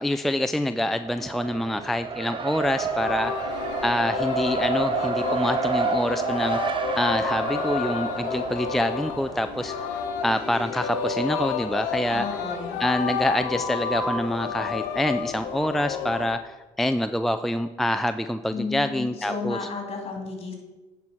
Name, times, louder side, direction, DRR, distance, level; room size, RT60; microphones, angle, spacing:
voice 1, 0.0-3.5 3.8-12.3 12.8-19.7, left 1 dB, ahead, 9 dB, 0.3 m, -26 dB
Race car auto racing, 1.0-10.1, right 6 dB, 35° right, 0.8 m, -30 dB
Singing, 2.6-16.3, left 6 dB, 80° left, 0.9 m, -30 dB
voice 2, 12.1-12.8 18.5-20.5, left 4 dB, 45° left, 2 dB, 2.5 m, -33 dB
9.3 x 4.5 x 5.7 m, 1.2 s
supercardioid pair, 75°, 15 cm